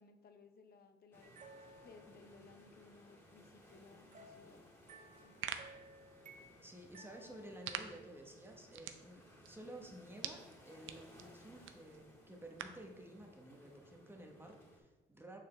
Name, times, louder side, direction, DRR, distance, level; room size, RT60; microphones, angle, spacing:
voice 1, 0.0-4.6 5.2-5.4, left 4 dB, 50° left, 8 dB, 0.8 m, -61 dB
sound 1, 1.1-14.8, left 1 dB, 10° left, 2.3 m, -62 dB
sound 2, 1.2-2.7 4.1-7.9, right 2 dB, 40° right, 0.7 m, -59 dB
Popping Knuckles, 5.1-12.9, right 9 dB, 80° right, 0.6 m, -49 dB
voice 2, 6.6-15.4, right 1 dB, 10° right, 2 dB, 1.1 m, -53 dB
6.5 x 6.4 x 3.2 m, 1.1 s
cardioid pair, 90°, 20 cm